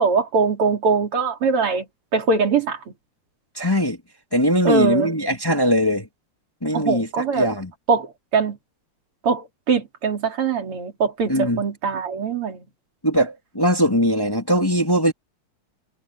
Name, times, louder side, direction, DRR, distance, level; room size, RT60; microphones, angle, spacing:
voice 1, 0.0-1.9 2.1-2.8 4.7-5.1 6.7-7.5 7.9-8.6 9.2-12.6, right 4 dB, 85° right, 3.8 m, -22 dB
voice 2, 3.6-4.0 4.3-6.1 6.6-7.7 11.3-11.6 13.0-15.1, equal, 10° left, 1.7 m, -20 dB
omnidirectional pair, 2.4 m